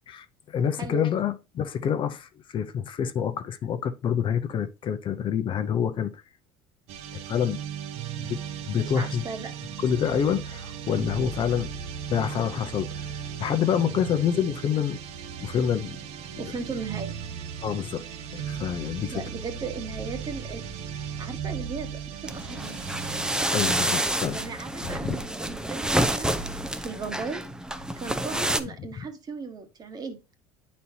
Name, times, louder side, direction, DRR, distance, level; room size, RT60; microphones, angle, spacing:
voice 1, 0.1-6.2 7.1-7.6 8.2-8.4 8.7-9.2 9.8-11.7 12.1-13.1 13.4-15.0 15.4-16.0 17.6-18.0 18.3-19.2 23.5-24.4 24.8-25.2 28.3-28.4, left 8 dB, 45° left, 0.7 m, -27 dB
voice 2, 0.8-1.2 8.7-9.5 16.4-17.2 18.1-18.2 19.1-20.7 20.9-22.7 24.3-27.4 28.0-30.3, right 4 dB, 35° right, 1.3 m, -37 dB
sound 1, 6.9-23.9, right 7 dB, 65° right, 0.9 m, -37 dB
sound 2, 22.3-28.6, right 1 dB, 5° right, 0.6 m, -28 dB
9.2 x 4.2 x 2.8 m
supercardioid pair, 95°, 12 cm